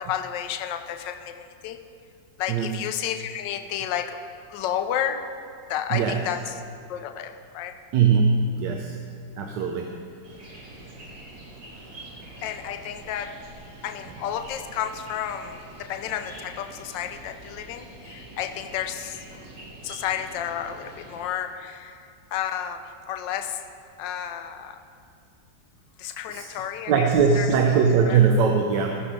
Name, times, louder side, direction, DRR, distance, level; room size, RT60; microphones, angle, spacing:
voice 1, 0.0-1.8 2.4-4.2 4.5-5.2 5.7-6.6 6.9-7.7 12.3-13.3 13.8-19.2 19.8-22.8 23.1-23.6 24.0-24.8 26.0-27.1 27.4-27.5 28.1-28.2, left 10 dB, 80° left, 8 dB, 1.3 m, -31 dB
voice 2, 2.5-2.8 5.9-6.2 7.9-9.0 9.4-9.9 26.3-26.5 26.9-29.0, right 6 dB, 75° right, 3 dB, 1.2 m, -21 dB
sound 1, 10.2-21.2, right 2 dB, 55° right, 2.3 m, -45 dB
13.0 x 5.9 x 5.1 m, 2.4 s
omnidirectional pair, 2.0 m